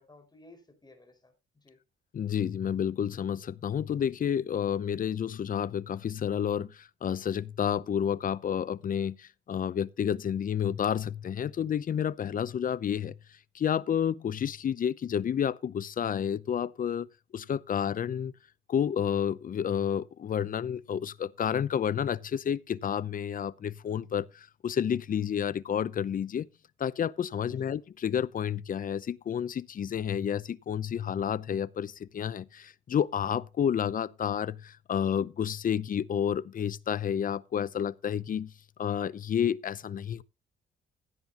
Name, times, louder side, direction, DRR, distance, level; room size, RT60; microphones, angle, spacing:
voice 1, 0.0-1.8 27.4-27.8, left 2 dB, 20° left, 5.2 m, -57 dB
voice 2, 2.1-13.1 13.5-17.1 17.3-18.3 18.7-26.5 26.8-38.5 38.8-40.2, left 8 dB, 45° left, 0.6 m, -30 dB
16.0 x 9.4 x 2.9 m
cardioid pair, 90°, 20 cm